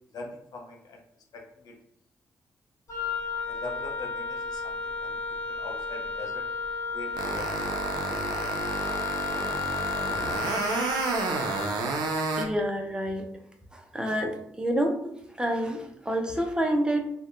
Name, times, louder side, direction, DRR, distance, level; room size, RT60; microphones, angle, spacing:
voice 1, 0.1-1.0 1.3-1.7 3.5-5.2 5.5-6.4 6.9-7.7, left 3 dB, 70° left, 1 dB, 0.5 m, -42 dB
Wind instrument woodwind instrument, 2.9-11.7, left 5 dB, 50° left, 1.0 m, -33 dB
sound 1, 7.2-12.4, right 3 dB, 85° right, 0.4 m, -30 dB
voice 2, 12.3-13.2 13.7-17.1, equal, 10° right, 3 dB, 0.5 m, -28 dB
2.7 x 2.1 x 2.4 m, 0.73 s
supercardioid pair, 60°, 7 cm